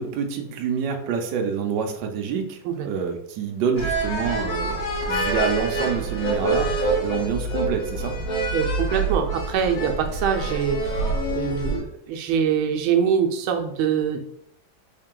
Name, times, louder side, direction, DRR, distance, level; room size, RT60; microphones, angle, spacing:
voice 1, 0.0-4.8 5.1-8.1, right 6 dB, 70° right, 3 dB, 1.2 m, -27 dB
sound 1, 3.8-11.8, right 2 dB, 90° left, 2.0 m, -26 dB
voice 2, 8.5-14.2, right 7 dB, 90° right, 5 dB, 1.4 m, -24 dB
4.5 x 2.8 x 3.7 m, 0.70 s
omnidirectional pair, 2.2 m